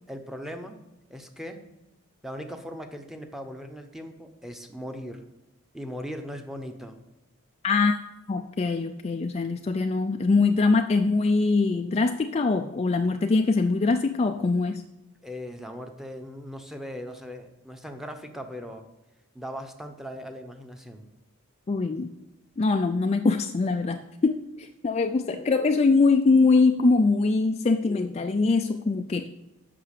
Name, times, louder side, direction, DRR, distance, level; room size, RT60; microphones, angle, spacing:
voice 1, 0.1-0.8 1.1-1.6 2.2-5.3 5.7-7.0 15.2-18.9 19.3-21.1, equal, ahead, 5 dB, 0.9 m, -39 dB
voice 2, 7.6-8.0 8.3-14.8 21.7-22.1 22.6-29.3, left 3 dB, 30° left, 6 dB, 0.4 m, -23 dB
8.5 x 6.1 x 6.7 m, 0.93 s
head